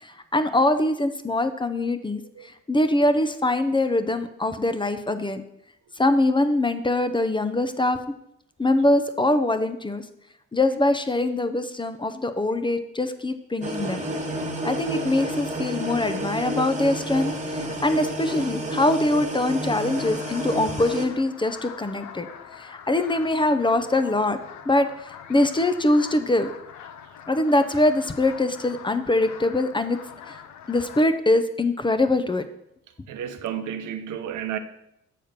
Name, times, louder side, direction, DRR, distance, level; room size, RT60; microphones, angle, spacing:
voice 1, 0.0-5.4 6.0-8.0 8.6-10.0 10.5-14.0 14.6-22.3 22.5-24.4 24.6-26.5 27.3-30.0 30.3-30.4 30.7-32.4, left 2 dB, 15° left, 0.6 m, -23 dB
sound 1, 13.6-21.1, equal, 25° right, 1.6 m, -30 dB
sound 2, 19.8-31.0, left 8 dB, 75° left, 0.7 m, -43 dB
voice 2, 33.1-34.6, right 9 dB, 80° right, 0.8 m, -32 dB
6.7 x 4.3 x 6.5 m
cardioid pair, 90°, 30 cm